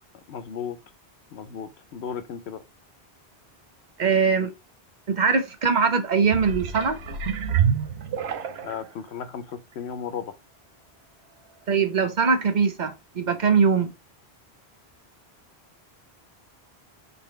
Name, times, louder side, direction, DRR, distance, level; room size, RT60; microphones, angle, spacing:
voice 1, 0.3-0.8 1.3-2.6 8.6-10.3, left 7 dB, 90° left, 0.9 m, -35 dB
voice 2, 4.0-4.5 5.1-7.0 11.7-13.9, right 5 dB, 50° right, 0.8 m, -22 dB
sound 1, 6.2-8.9 9.5-9.6, right 8 dB, 80° right, 0.9 m, -27 dB
4.0 x 3.9 x 3.1 m
omnidirectional pair, 1.1 m